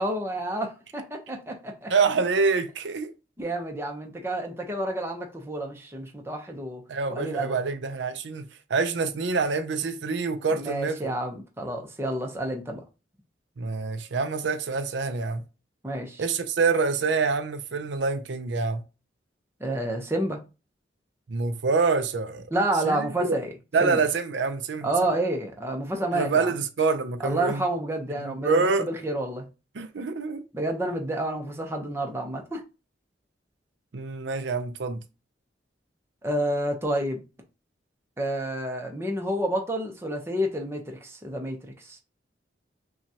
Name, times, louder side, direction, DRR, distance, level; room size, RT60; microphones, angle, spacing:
voice 1, 0.0-1.9 3.4-6.8 7.1-7.6 10.5-12.8 15.8-16.2 19.6-20.4 22.5-23.5 23.8-24.0 24.8-26.5 27.2-29.5 30.5-32.6 36.2-37.2 38.2-42.0, right 1 dB, 15° right, 0.8 m, -29 dB
voice 2, 1.9-3.1 6.9-8.4 8.7-11.1 13.6-15.4 16.2-18.8 21.3-22.5 22.8-23.4 23.7-24.9 26.1-27.6 28.2-28.9 29.8-30.4 33.9-35.0, right 4 dB, 85° right, 0.5 m, -26 dB
5.7 x 2.4 x 2.8 m
head